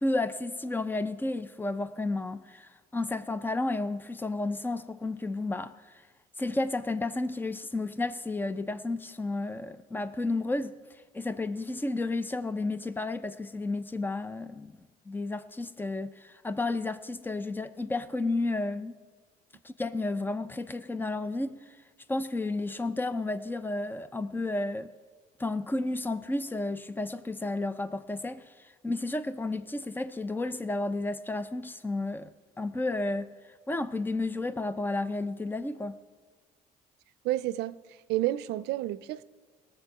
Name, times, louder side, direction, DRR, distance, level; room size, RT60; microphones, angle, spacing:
voice 1, 0.0-6.0 6.4-10.8 11.1-14.7 15.1-19.0 19.6-21.6 22.1-24.9 25.4-32.3 32.6-33.3 33.7-36.0, left 2 dB, 10° left, 0.6 m, -32 dB
voice 2, 37.2-37.8 38.1-39.2, right 15 dB, 85° right, 0.5 m, -30 dB
19.0 x 7.4 x 4.8 m
cardioid pair, 110°, 17 cm